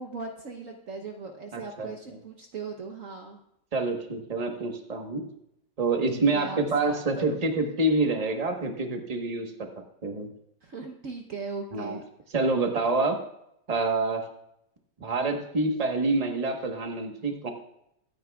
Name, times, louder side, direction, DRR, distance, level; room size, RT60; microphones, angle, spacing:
voice 1, 0.0-3.4 6.1-6.6 6.9-7.4 10.6-12.0, right 4 dB, 55° right, 2 dB, 1.2 m, -38 dB
voice 2, 1.5-2.2 3.7-5.2 5.8-9.7 10.0-10.3 11.7-12.0 12.3-13.2 13.7-14.2 15.0-17.5, right 3 dB, 25° right, 3 dB, 1.2 m, -27 dB
24.0 x 9.4 x 2.4 m, 0.79 s
omnidirectional pair, 1.9 m